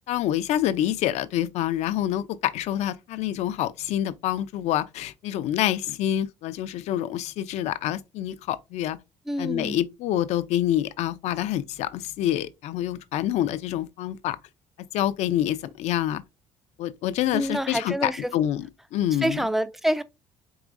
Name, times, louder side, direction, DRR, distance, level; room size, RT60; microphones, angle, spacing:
voice 1, 0.1-9.0 9.4-14.4 14.9-16.2 16.8-19.4, left 12 dB, 70° left, 0.5 m, -27 dB
voice 2, 9.3-9.8 17.3-18.3 19.2-20.0, equal, ahead, 0.3 m, -27 dB
4.9 x 3.0 x 2.5 m
cardioid pair, 135°, 12 cm